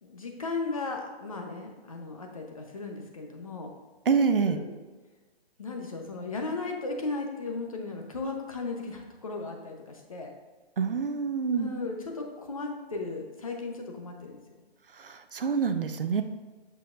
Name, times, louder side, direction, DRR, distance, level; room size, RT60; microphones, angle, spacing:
voice 1, 0.0-3.7 4.4-4.8 5.6-10.3 11.5-14.4, left 3 dB, 35° left, 2 dB, 0.9 m, -36 dB
voice 2, 4.1-4.6 10.8-11.7 15.0-16.2, right 5 dB, 60° right, 8 dB, 0.6 m, -26 dB
8.2 x 7.0 x 2.5 m, 1.3 s
hypercardioid pair, 175°, 32 cm